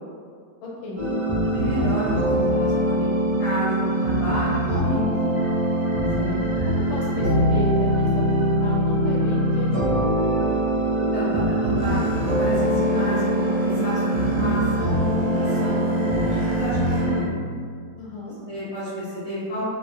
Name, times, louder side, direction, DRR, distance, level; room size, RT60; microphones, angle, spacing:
voice 1, 0.6-1.0 6.2-9.9 18.0-18.4, left 1 dB, 75° left, -5 dB, 1.2 m, -34 dB
sound 1, 1.0-17.2, right 1 dB, 40° right, 0.5 m, -22 dB
voice 2, 1.4-3.1 3.4-5.1 10.9-17.3 18.2-19.6, right 1 dB, 55° left, -12 dB, 0.8 m, -31 dB
Boat Water vehicle, 11.8-17.1, equal, 70° right, 1.2 m, -33 dB
3.0 x 2.1 x 2.4 m, 2.1 s
omnidirectional pair, 2.1 m